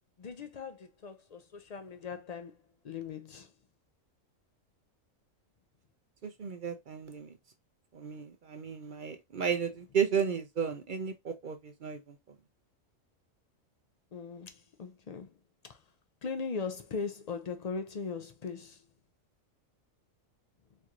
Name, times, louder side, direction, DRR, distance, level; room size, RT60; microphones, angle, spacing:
voice 1, 0.2-3.5 14.1-15.4 15.6-15.8 16.2-18.8, left 5 dB, 75° left, 0.3 m, -39 dB
voice 2, 6.2-7.3 7.9-12.2, right 7 dB, 50° right, 0.6 m, -33 dB
4.4 x 3.0 x 2.4 m
omnidirectional pair, 1.4 m